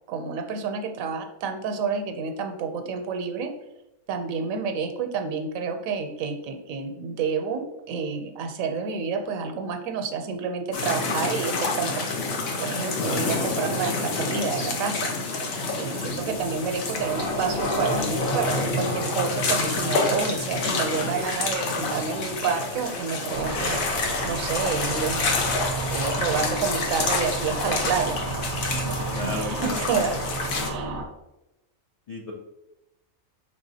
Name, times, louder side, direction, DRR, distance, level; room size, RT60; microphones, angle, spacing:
voice 1, 0.1-3.5 4.1-12.1 12.6-15.1 15.4-15.5 15.8-28.2 28.9-29.0 29.2-30.2 30.5-31.0, right 5 dB, 80° right, 6 dB, 1.0 m, -29 dB
sound 1, 10.7-30.7, left 3 dB, 90° left, 1.2 m, -28 dB
sound 2, 16.1-24.8, left 1 dB, 55° left, 0.8 m, -33 dB
sound 3, 23.3-31.1, right 3 dB, 55° right, 0.6 m, -32 dB
voice 2, 28.7-29.8 32.1-32.3, left 2 dB, 70° left, -1 dB, 0.3 m, -34 dB
5.2 x 3.4 x 2.7 m, 0.95 s
omnidirectional pair, 1.4 m